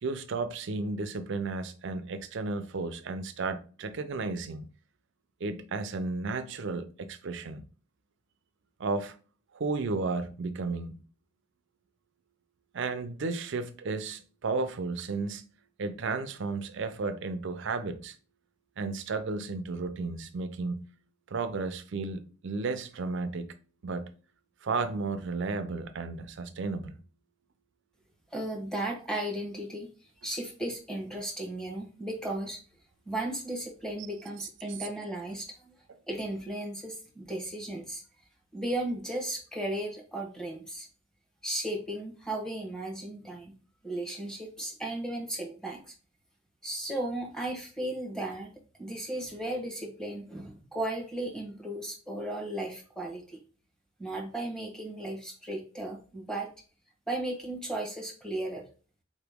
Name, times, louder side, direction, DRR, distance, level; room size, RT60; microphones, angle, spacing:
voice 1, 0.0-4.7 5.4-7.6 8.8-9.2 9.5-11.0 12.7-15.5 15.8-18.1 18.8-20.9 21.3-23.5 23.8-24.1 24.6-27.0, right 3 dB, 60° right, 0.5 m, -33 dB
voice 2, 28.3-29.9 30.2-32.6 33.1-35.7 36.1-38.0 38.5-40.9 41.4-43.5 43.8-45.9 46.6-48.5 48.8-53.4 54.0-56.5 57.1-58.6, right 1 dB, 5° left, 1.1 m, -35 dB
4.3 x 2.9 x 3.5 m
head